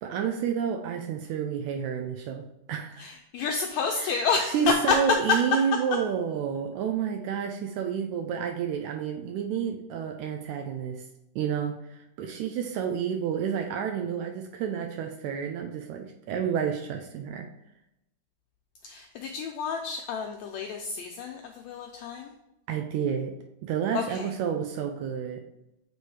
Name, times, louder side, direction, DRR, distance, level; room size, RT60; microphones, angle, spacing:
voice 1, 0.0-3.1 4.0-4.3 4.5-11.0 11.4-17.5 22.7-23.4 23.6-25.4, right 7 dB, 80° right, 4 dB, 1.8 m, -30 dB
voice 2, 3.0-5.0 18.8-22.3 23.9-24.3, left 5 dB, 90° left, 2 dB, 1.6 m, -29 dB
8.4 x 3.4 x 4.7 m, 0.87 s
omnidirectional pair, 3.8 m